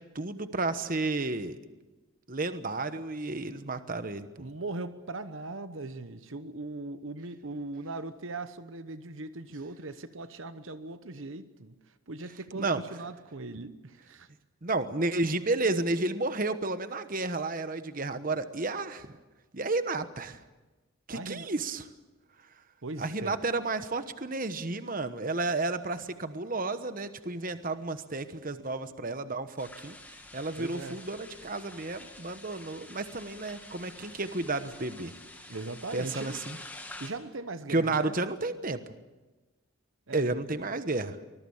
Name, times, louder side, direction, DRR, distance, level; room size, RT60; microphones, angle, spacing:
voice 1, 0.1-1.6 2.3-4.3 12.6-12.8 14.6-19.1 19.5-20.4 21.1-21.9 23.0-35.1 35.9-36.6 37.7-38.8 40.1-41.2, right 2 dB, 40° right, 10 dB, 1.1 m, -32 dB
voice 2, 4.4-11.7 12.1-14.3 21.1-21.5 22.8-23.4 30.6-31.0 35.5-36.4 36.8-38.2 40.1-40.4, right 2 dB, 65° right, 11 dB, 1.0 m, -39 dB
sound 1, 29.6-37.1, left 2 dB, 10° left, 2.3 m, -48 dB
24.5 x 21.0 x 7.2 m, 1.2 s
head